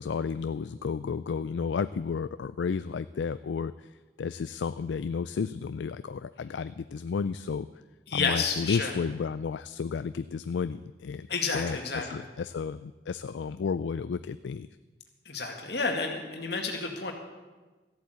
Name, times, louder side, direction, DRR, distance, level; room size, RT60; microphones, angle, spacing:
voice 1, 0.0-3.9 4.2-7.7 8.1-11.3 11.5-14.7, left 5 dB, 80° left, 13 dB, 0.4 m, -32 dB
voice 2, 8.1-8.9 11.3-12.2 15.3-17.1, left 4 dB, 65° left, 2 dB, 2.2 m, -30 dB
14.0 x 8.4 x 8.1 m, 1.2 s
head